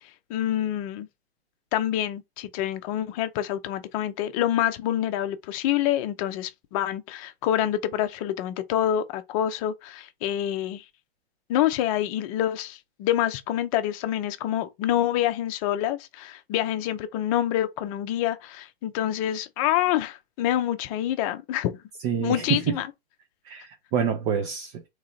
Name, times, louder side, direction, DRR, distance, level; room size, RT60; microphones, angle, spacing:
voice 1, 0.3-1.1 1.7-10.8 11.5-21.7 22.2-22.9, left 12 dB, 35° left, 0.7 m, -27 dB
voice 2, 22.0-22.8 23.4-24.9, right 7 dB, 25° right, 0.6 m, -27 dB
3.7 x 3.1 x 4.1 m
hypercardioid pair, 130°, 32 cm